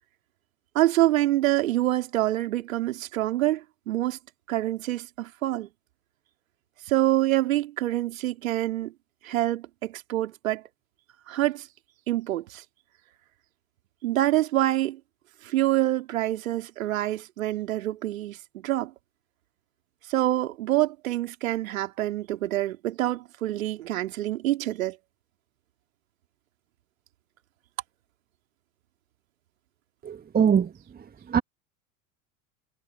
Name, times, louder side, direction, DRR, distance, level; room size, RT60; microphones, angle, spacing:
voice 1, 0.8-4.2 4.5-5.7 6.9-8.9 9.2-10.6 11.3-11.7 12.1-12.6 14.0-15.0 15.4-18.9 20.1-25.0, right 15 dB, 65° right, 3.5 m, -26 dB
voice 2, 30.0-30.7 31.3-31.4, right 7 dB, 20° right, 1.6 m, -21 dB
figure-of-eight pair, 75°, 43 cm